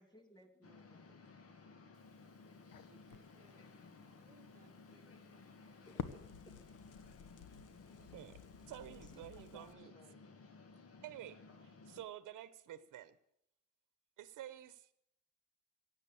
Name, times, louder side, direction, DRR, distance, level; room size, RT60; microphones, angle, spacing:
voice 1, 0.0-1.3 5.9-6.8 7.9-8.5 8.9-10.3, equal, 15° left, 7 dB, 2.0 m, -64 dB
sound 1, 0.6-12.1, left 4 dB, 45° left, 1.9 m, -58 dB
Crackle, 1.9-9.7, left 7 dB, 75° left, 1.2 m, -53 dB
voice 2, 2.9-5.8, right 4 dB, 25° right, 3 dB, 1.9 m, -70 dB
voice 3, 8.0-8.4 8.7-9.9 11.0-13.2 14.2-14.9, right 12 dB, 70° right, 14 dB, 1.1 m, -51 dB
16.0 x 9.0 x 8.5 m, 0.76 s
cardioid pair, 145°, 32 cm